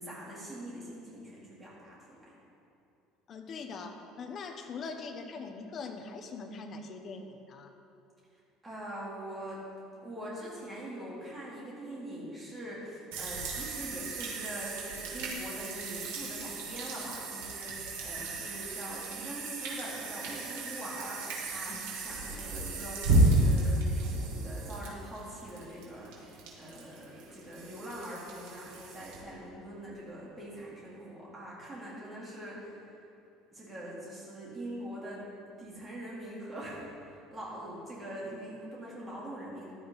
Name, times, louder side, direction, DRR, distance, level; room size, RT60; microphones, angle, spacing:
voice 1, 0.0-2.2 8.6-9.6 10.0-33.0 33.5-35.2 35.6-39.7, right 1 dB, 15° right, -6 dB, 3.3 m, -43 dB
voice 2, 3.3-7.7 21.7-21.8, left 4 dB, 30° left, 5 dB, 1.0 m, -42 dB
sound 1, 13.1-29.2, right 2 dB, 85° right, 2.8 m, -33 dB
15.5 x 11.5 x 4.1 m, 2.9 s
cardioid pair, 170°, 0 cm